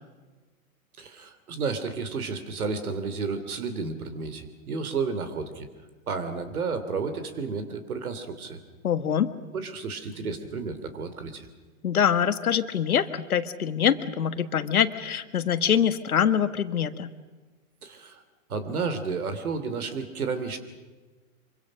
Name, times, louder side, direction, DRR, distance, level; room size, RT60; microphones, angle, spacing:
voice 1, 1.0-5.7 6.1-8.6 9.5-11.5 17.8-18.2 18.5-20.6, right 4 dB, 85° right, 10 dB, 3.2 m, -32 dB
voice 2, 8.8-9.3 11.8-17.1, left 8 dB, 85° left, 12 dB, 1.6 m, -24 dB
25.5 x 24.0 x 6.5 m, 1.3 s
hypercardioid pair, 125°, 43 cm